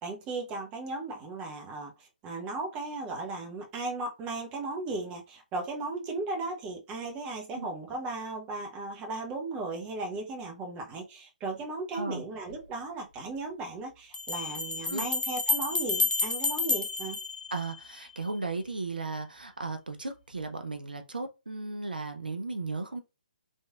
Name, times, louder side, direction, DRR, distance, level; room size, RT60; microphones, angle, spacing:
voice 1, 0.0-1.9 2.2-17.2, right 3 dB, 20° right, 0.8 m, -36 dB
sound 1, 12.5-12.6 14.1-18.1, left 3 dB, 75° left, 0.4 m, -30 dB
voice 2, 17.5-23.0, right 3 dB, 80° right, 0.5 m, -35 dB
3.1 x 2.6 x 2.3 m
figure-of-eight pair, 135°, 5 cm